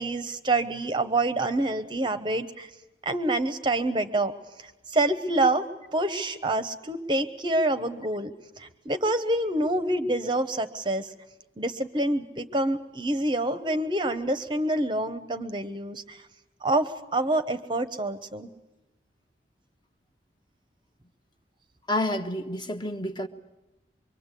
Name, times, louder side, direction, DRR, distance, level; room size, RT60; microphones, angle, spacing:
voice 1, 0.0-2.7 3.0-4.3 4.6-5.7 5.9-8.3 8.6-11.1 11.6-16.2 16.6-18.5, right 2 dB, 25° right, 0.8 m, -27 dB
voice 2, 21.9-23.3, left 1 dB, 25° left, 1.1 m, -29 dB
24.5 x 23.5 x 8.3 m
head